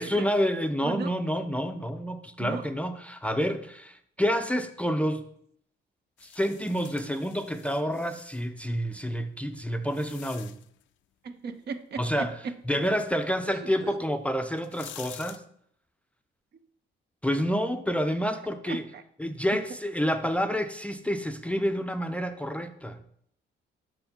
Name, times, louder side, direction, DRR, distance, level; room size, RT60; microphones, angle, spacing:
voice 1, 0.0-5.3 6.2-10.6 12.0-12.3 12.7-15.4 17.2-18.8 19.2-23.0, equal, 5° left, 0.4 m, -28 dB
voice 2, 0.8-1.1 2.4-2.7 11.2-12.8 13.5-14.0 18.7-19.0 19.5-19.6, right 5 dB, 55° right, 0.6 m, -37 dB
sound 1, 6.2-8.5 9.2-10.8 13.8-13.9 14.5-15.4, left 13 dB, 70° left, 0.4 m, -48 dB
6.0 x 4.7 x 5.3 m
cardioid pair, 90°, 20 cm